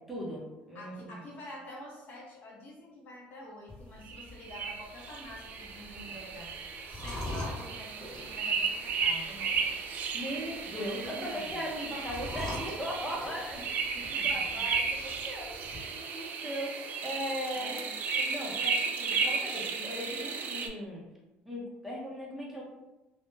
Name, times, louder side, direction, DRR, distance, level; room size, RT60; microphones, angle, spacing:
voice 1, 0.1-1.2 10.1-13.6 14.1-17.9 18.1-21.0 21.4-22.6, equal, 5° right, -4 dB, 0.6 m, -38 dB
voice 2, 0.7-6.6 6.9-9.6 10.7-11.6 13.5-13.6 13.9-14.7 16.3-16.5 17.5-18.0, left 1 dB, 50° left, -2 dB, 0.7 m, -48 dB
sound 1, 3.7-15.8, left 1 dB, 20° left, 0.9 m, -45 dB
sound 2, 4.1-20.7, right 5 dB, 50° right, 0.3 m, -34 dB
2.1 x 2.0 x 3.2 m, 0.99 s
cardioid pair, 120°, 4 cm